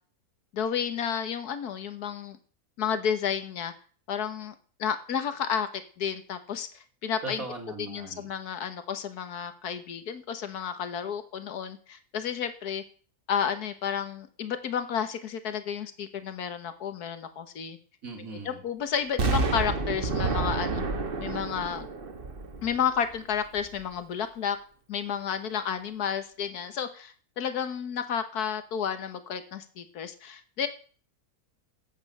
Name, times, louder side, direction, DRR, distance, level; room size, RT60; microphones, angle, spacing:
voice 1, 0.5-2.4 2.8-3.7 4.1-5.7 6.0-7.4 7.8-12.8 13.3-17.8 18.5-20.8 21.2-21.9 22.6-24.6 24.9-30.7, left 8 dB, 85° left, 10 dB, 1.7 m, -31 dB
voice 2, 7.2-8.3 18.0-18.6, right 3 dB, 65° right, 2 dB, 3.1 m, -39 dB
Explosion, 19.2-23.1 23.6-23.7, right 3 dB, 40° right, 1.3 m, -29 dB
12.5 x 8.6 x 6.6 m, 0.43 s
omnidirectional pair, 1.6 m